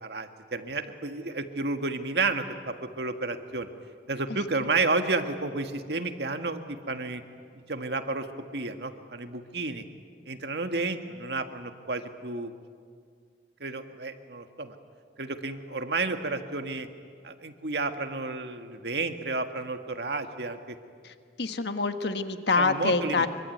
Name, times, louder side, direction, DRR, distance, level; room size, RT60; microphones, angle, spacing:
voice 1, 0.0-3.7 4.1-7.2 7.7-8.3 8.5-9.8 10.3-12.5 13.6-14.8 15.2-16.9 17.2-20.8 22.6-23.3, right 3 dB, 70° right, 7 dB, 1.8 m, -31 dB
voice 2, 21.0-23.3, left 3 dB, 75° left, 8 dB, 1.4 m, -26 dB
25.0 x 24.0 x 9.3 m, 2.1 s
head